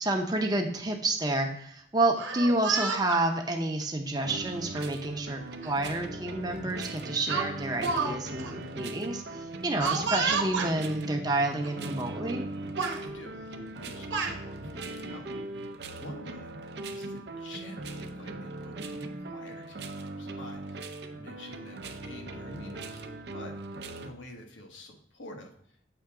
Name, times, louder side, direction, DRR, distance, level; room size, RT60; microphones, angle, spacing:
voice 1, 0.0-12.4, right 2 dB, 20° right, 3 dB, 0.7 m, -29 dB
Speech, 2.1-3.2 4.1-4.4 5.6-5.7 6.1-6.3 7.3-8.1 8.4-8.5 9.8-10.7 11.6-11.7 12.1-12.5 12.8-13.0 13.8-14.4, right 4 dB, 85° right, 1.0 m, -31 dB
sound 1, 4.2-24.1, right 2 dB, 60° right, 0.6 m, -39 dB
voice 2, 12.6-15.3 15.9-25.8, left 1 dB, 85° left, 3 dB, 1.2 m, -48 dB
7.9 x 3.5 x 4.8 m, 0.70 s
head